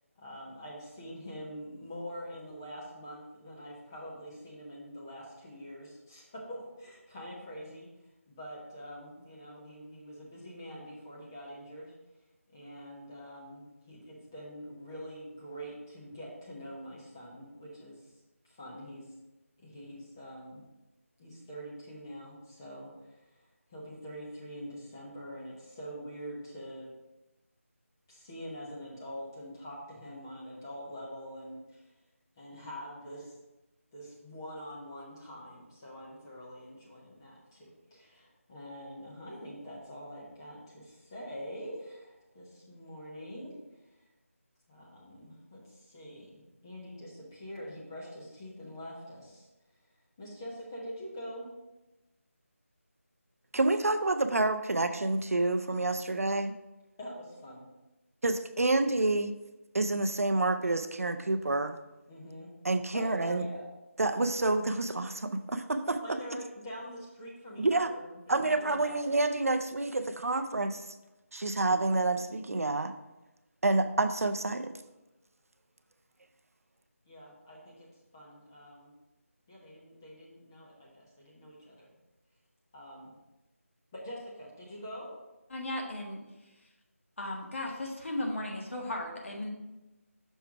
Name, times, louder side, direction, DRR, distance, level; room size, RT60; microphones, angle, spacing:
voice 1, 0.2-7.9 8.3-11.9 12.5-18.0 18.4-19.1 19.6-20.7 21.2-26.9 28.1-31.8 32.4-33.3 33.9-43.6 44.7-46.3 46.6-49.5 50.2-51.5 57.0-57.7 62.1-62.6 62.9-63.7 66.0-69.0 77.1-78.9 79.5-81.9 82.7-83.1 83.9-85.1, equal, 15° left, -5 dB, 0.9 m, -45 dB
voice 2, 53.5-56.5 58.2-59.3 59.7-61.8 62.6-63.4 64.0-66.0 67.6-67.9 68.3-70.8 71.3-72.9 73.6-74.7, right 2 dB, 75° right, 8 dB, 0.5 m, -28 dB
voice 3, 85.5-86.2 87.2-89.5, left 1 dB, 55° left, 0 dB, 1.5 m, -36 dB
6.3 x 3.3 x 5.8 m, 1.0 s
figure-of-eight pair, 175°, 8 cm